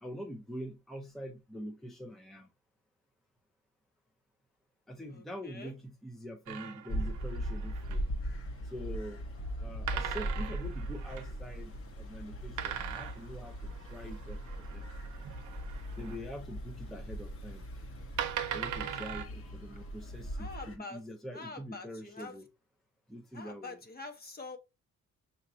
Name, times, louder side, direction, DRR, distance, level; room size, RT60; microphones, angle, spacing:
voice 1, 0.0-2.5 4.9-8.0 8.6-9.2 9.5-14.9 16.0-17.6 18.5-22.5 23.1-23.8, equal, ahead, 0.6 m, -44 dB
voice 2, 5.1-5.7 20.4-21.0 21.3-22.4 23.3-24.6, left 3 dB, 30° left, 1.1 m, -45 dB
sound 1, 6.5-8.2 9.9-11.3 12.6-16.2 17.3-17.4 18.2-19.3, right 10 dB, 80° right, 0.7 m, -40 dB
sound 2, 6.9-20.8, equal, 45° left, 1.5 m, -39 dB
5.8 x 3.0 x 2.7 m
cardioid pair, 90°, 30 cm